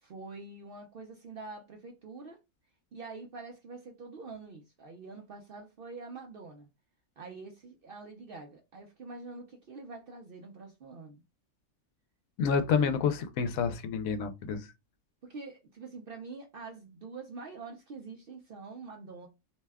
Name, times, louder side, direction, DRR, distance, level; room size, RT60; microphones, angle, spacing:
voice 1, 0.0-2.4 2.9-6.7 7.2-11.2 15.2-19.3, right 3 dB, 60° right, 0.6 m, -45 dB
voice 2, 12.4-14.7, left 6 dB, 80° left, 1.0 m, -28 dB
2.7 x 2.2 x 3.3 m
omnidirectional pair, 1.4 m